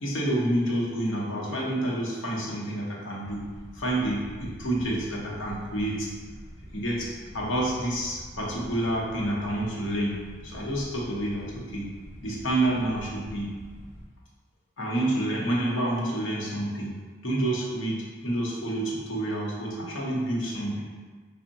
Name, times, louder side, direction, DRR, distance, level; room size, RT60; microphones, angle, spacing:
voice 1, 0.0-3.4 3.7-6.1 6.7-10.1 10.4-11.9 12.2-13.5 14.8-16.9 17.2-20.8, right 1 dB, 80° left, -4 dB, 0.8 m, -28 dB
sound 1, 3.2-14.0, equal, 35° right, 1.2 m, -46 dB
3.4 x 2.1 x 3.9 m, 1.5 s
head